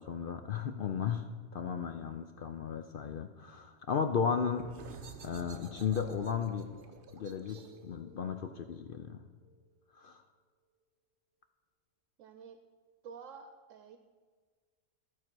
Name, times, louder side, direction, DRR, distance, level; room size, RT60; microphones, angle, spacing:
voice 1, 0.0-4.7 5.2-6.7 7.1-9.2 9.9-10.2, left 7 dB, 60° left, 7 dB, 0.6 m, -35 dB
sound 1, 4.5-9.9, right 5 dB, 50° right, 0.8 m, -52 dB
voice 2, 12.2-12.6 13.0-14.0, right 6 dB, 85° right, 7 dB, 1.0 m, -50 dB
13.5 x 4.6 x 6.1 m, 1.5 s
omnidirectional pair, 1.3 m